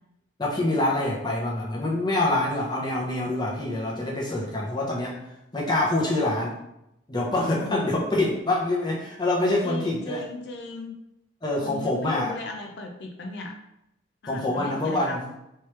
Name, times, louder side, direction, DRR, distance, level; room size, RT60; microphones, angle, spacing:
voice 1, 0.4-5.2 5.5-6.6 7.1-10.2 11.4-12.3 14.3-15.3, left 2 dB, 25° left, -3 dB, 0.8 m, -25 dB
voice 2, 7.3-8.0 9.6-10.9 11.6-13.6 14.2-15.2, left 2 dB, 65° left, 3 dB, 0.5 m, -36 dB
3.1 x 3.1 x 3.2 m, 0.86 s
head